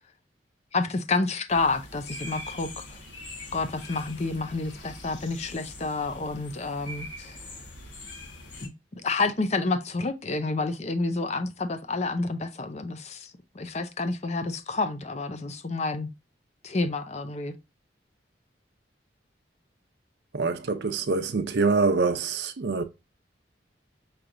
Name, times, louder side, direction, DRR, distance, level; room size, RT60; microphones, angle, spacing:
voice 1, 0.7-3.0 3.5-7.4 8.6-16.1 16.6-17.5, left 3 dB, 35° left, 0.6 m, -29 dB
sound 1, 1.5-8.7, left 1 dB, 80° left, 1.4 m, -43 dB
voice 2, 20.3-22.8, right 4 dB, 70° right, 0.6 m, -25 dB
5.8 x 3.3 x 2.5 m
head